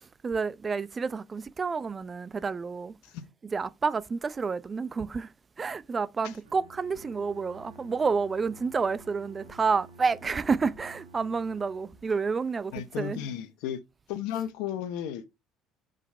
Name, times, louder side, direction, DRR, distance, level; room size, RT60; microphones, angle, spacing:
voice 1, 0.0-3.0 3.5-13.2, right 5 dB, 30° right, 0.6 m, -30 dB
Bowed string instrument, 6.4-12.3, right 3 dB, 85° right, 1.5 m, -52 dB
voice 2, 12.7-13.8 14.1-15.3, left 10 dB, 75° left, 0.9 m, -34 dB
5.4 x 5.1 x 5.3 m
hypercardioid pair, 60°, 0 cm